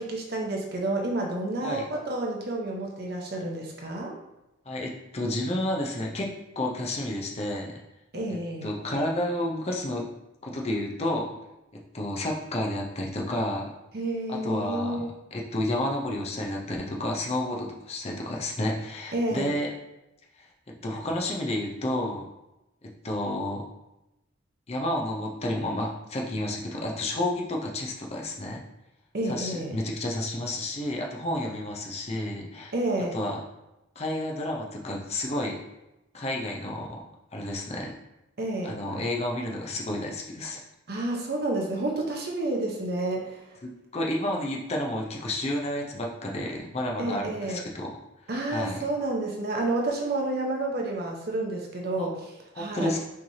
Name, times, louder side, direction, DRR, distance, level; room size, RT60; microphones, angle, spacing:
voice 1, 0.0-4.1 8.1-8.7 13.9-15.1 19.1-19.5 29.1-29.7 32.7-33.2 38.4-38.7 40.9-43.5 47.0-47.6 48.3-52.9, right 2 dB, 55° right, -1 dB, 0.9 m, -30 dB
voice 2, 4.7-7.8 8.6-10.0 10.4-11.4 11.7-13.7 14.3-19.7 20.4-22.2 22.8-23.7 24.7-28.6 29.2-32.7 33.1-33.4 34.0-35.6 36.1-37.0 37.3-38.0 38.6-40.6 43.6-47.9 48.5-48.8 52.0-52.1 52.5-53.0, left 1 dB, 35° left, 0 dB, 0.7 m, -31 dB
5.6 x 3.3 x 2.8 m, 0.95 s
head